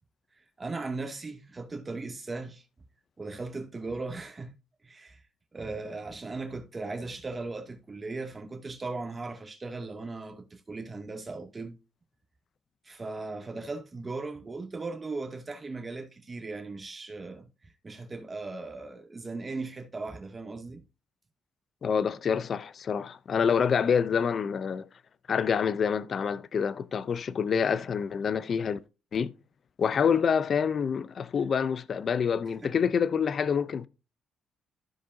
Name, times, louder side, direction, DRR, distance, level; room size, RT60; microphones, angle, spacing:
voice 1, 0.6-2.6 3.2-4.5 4.8-5.2 5.5-11.8 12.8-17.5 17.8-20.8 32.6-32.7, right 3 dB, 25° right, 2.3 m, -38 dB
voice 2, 21.8-24.9 25.3-28.8 29.1-29.3 29.8-33.9, left 6 dB, 50° left, 0.6 m, -27 dB
15.0 x 5.3 x 2.7 m
cardioid pair, 90°, 0 cm